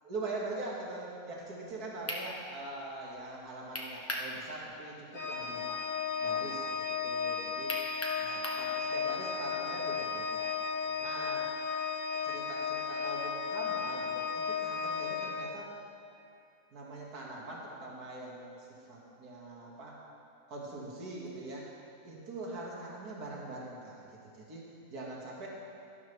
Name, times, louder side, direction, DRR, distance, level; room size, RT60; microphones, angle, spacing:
voice 1, 0.0-5.8 6.2-7.7 8.1-11.7 12.1-15.7 16.7-19.9 20.5-21.7 22.0-25.5, right 2 dB, 70° right, -4 dB, 2.3 m, -43 dB
sound 1, 1.7-1.8 2.1-2.3 3.7-4.3 4.7-4.8 7.7-8.7, left 1 dB, 15° left, 0.7 m, -36 dB
Organ, 5.1-16.0, left 6 dB, 45° left, 0.7 m, -34 dB
12.0 x 12.0 x 3.3 m, 2.7 s
omnidirectional pair, 1.7 m